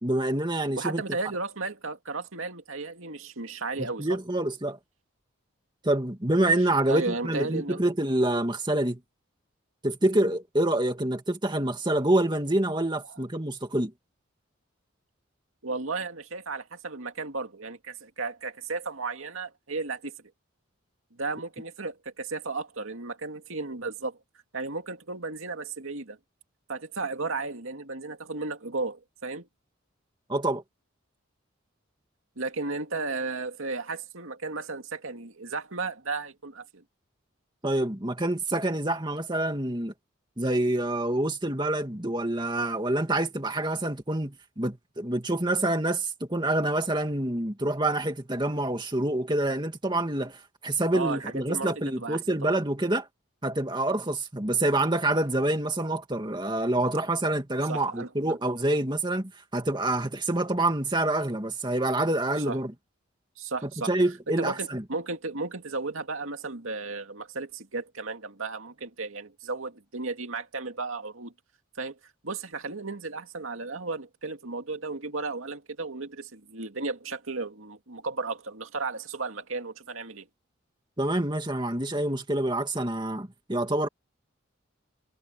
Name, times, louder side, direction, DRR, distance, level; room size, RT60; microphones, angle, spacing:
voice 1, 0.0-1.0 4.0-4.8 5.8-9.0 9.8-13.9 30.3-30.6 37.6-39.9 40.4-53.1 53.4-62.7 63.8-64.8 81.0-83.9, right 1 dB, 20° right, 2.5 m, -27 dB
voice 2, 0.8-4.1 6.9-7.8 15.6-20.1 21.2-24.2 24.5-26.2 26.7-29.5 32.4-36.8 50.9-52.6 57.7-58.4 62.5-62.6 63.4-63.9 64.4-71.3 71.8-72.0 72.2-80.3, right 3 dB, 80° right, 2.3 m, -34 dB
head